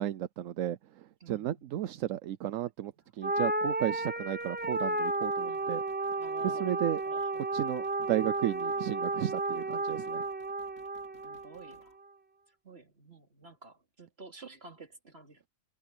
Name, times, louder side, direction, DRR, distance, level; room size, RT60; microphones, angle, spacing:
voice 1, 0.0-5.8 6.4-7.0 7.5-10.2, right 12 dB, 80° right, 1.0 m, -34 dB
voice 2, 1.2-1.8 2.8-3.1 5.4-5.7 6.2-6.8 7.0-7.3 11.2-12.0 12.6-15.5, right 3 dB, 50° right, 3.7 m, -51 dB
sound 1, 3.2-11.8, right 2 dB, 15° right, 0.4 m, -33 dB
sound 2, 4.4-6.6 7.0-12.0, left 3 dB, 75° left, 2.8 m, -64 dB
omnidirectional pair, 1.3 m